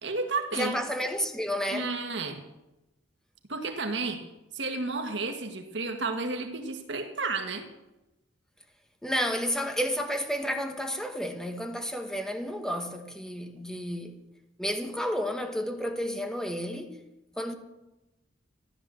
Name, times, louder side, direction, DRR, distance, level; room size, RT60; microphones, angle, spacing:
voice 1, 0.0-0.8 1.7-2.4 3.5-4.2 4.5-7.7, right 3 dB, 70° right, 1.8 m, -32 dB
voice 2, 0.5-2.0 9.0-14.2 14.6-17.0 17.4-17.6, equal, 5° left, 1.6 m, -31 dB
14.0 x 12.0 x 7.7 m
head